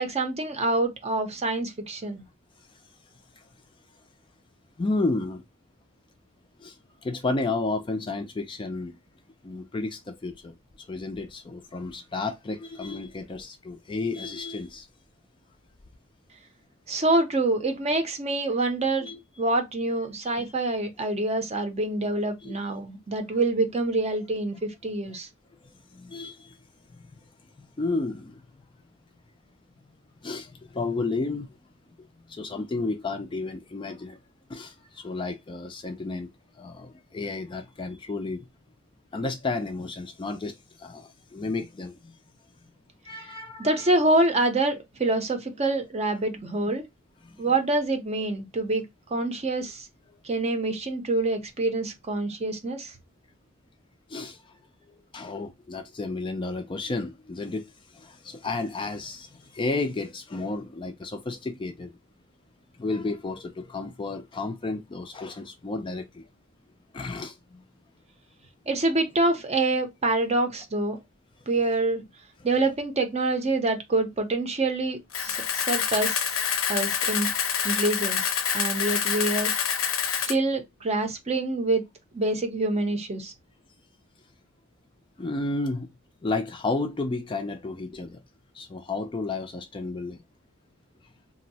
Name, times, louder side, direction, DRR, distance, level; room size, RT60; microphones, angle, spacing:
voice 1, 0.0-2.3 16.9-19.1 19.4-25.3 43.6-46.8 47.4-48.8 49.1-49.9 50.2-52.9 68.7-71.0 71.5-72.0 72.4-76.3 76.7-77.3 77.6-78.3 78.5-79.7 80.3-81.8 82.1-83.3, right 2 dB, 30° right, 0.6 m, -26 dB
voice 2, 4.8-5.4 6.6-6.8 7.0-9.0 9.4-10.5 10.9-14.9 19.0-19.2 20.2-20.4 22.4-22.6 25.6-26.6 27.1-27.2 27.6-28.4 30.2-31.5 32.3-34.2 34.5-36.3 36.6-38.5 39.1-42.1 43.1-43.8 47.2-47.4 54.1-54.4 55.1-61.9 62.8-66.2 66.9-67.6 85.2-85.9 86.2-88.2 88.5-90.2, left 3 dB, 25° left, 0.3 m, -32 dB
Camera, 75.1-80.3, left 8 dB, 70° left, 0.6 m, -27 dB
2.6 x 2.0 x 4.0 m
head